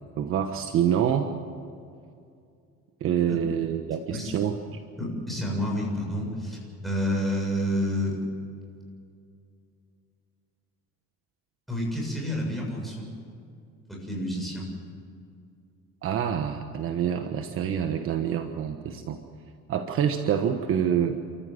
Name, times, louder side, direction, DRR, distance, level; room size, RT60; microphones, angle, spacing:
voice 1, 0.2-1.3 3.0-4.8 16.0-19.2 19.7-21.2, right 9 dB, 45° right, 6 dB, 1.3 m, -26 dB
voice 2, 4.1-4.4 5.0-8.2 11.7-13.1 14.0-14.7, equal, ahead, -3 dB, 7.3 m, -29 dB
29.5 x 14.5 x 7.9 m, 2.4 s
cardioid pair, 145°, 30 cm